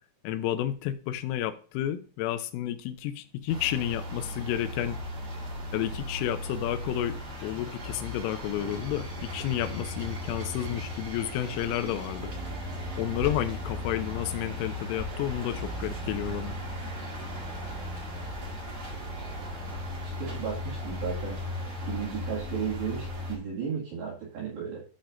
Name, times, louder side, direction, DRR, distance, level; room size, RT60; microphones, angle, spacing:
voice 1, 0.2-5.0 5.7-12.3 13.0-16.6, left 12 dB, 80° left, 3.2 m, -31 dB
sound 1, 3.5-23.4, left 1 dB, 85° right, 1.1 m, -36 dB
voice 2, 20.2-21.4 21.9-24.8, right 7 dB, 65° right, 4.0 m, -34 dB
14.5 x 5.8 x 2.6 m
omnidirectional pair, 6.0 m